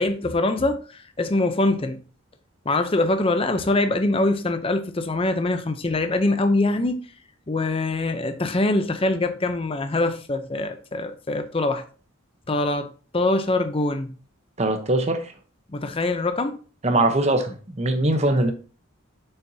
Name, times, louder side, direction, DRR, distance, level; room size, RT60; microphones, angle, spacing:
voice 1, 0.0-2.0 2.7-7.0 7.5-11.8 12.5-14.2 15.7-16.6, left 2 dB, 25° left, 0.6 m, -23 dB
voice 2, 14.6-15.3 16.8-18.5, right 2 dB, 30° right, 0.9 m, -21 dB
7.1 x 5.7 x 2.7 m
head